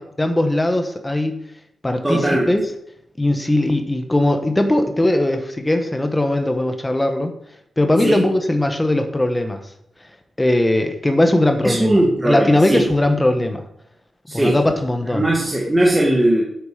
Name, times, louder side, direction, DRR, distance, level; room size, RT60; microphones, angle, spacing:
voice 1, 0.2-1.4 1.8-2.6 3.2-7.3 7.8-9.6 10.4-13.6 14.3-15.3, left 1 dB, 10° left, 6 dB, 1.3 m, -19 dB
voice 2, 2.0-2.5 8.0-8.2 11.6-12.9 14.3-14.6 15.1-16.4, right 1 dB, 10° right, -4 dB, 1.9 m, -18 dB
9.6 x 8.0 x 5.1 m, 0.76 s
wide cardioid pair, 150°, 0 cm